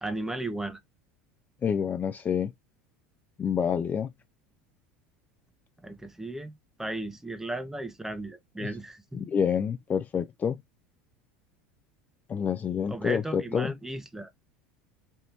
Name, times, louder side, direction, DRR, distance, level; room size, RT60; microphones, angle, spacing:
voice 1, 0.0-0.8 5.8-9.2 12.9-14.3, right 1 dB, 5° right, 0.7 m, -35 dB
voice 2, 1.6-2.5 3.4-4.1 8.6-8.7 9.1-10.6 12.3-13.7, left 7 dB, 30° left, 0.3 m, -28 dB
3.3 x 2.6 x 2.8 m
hypercardioid pair, 85°, 6 cm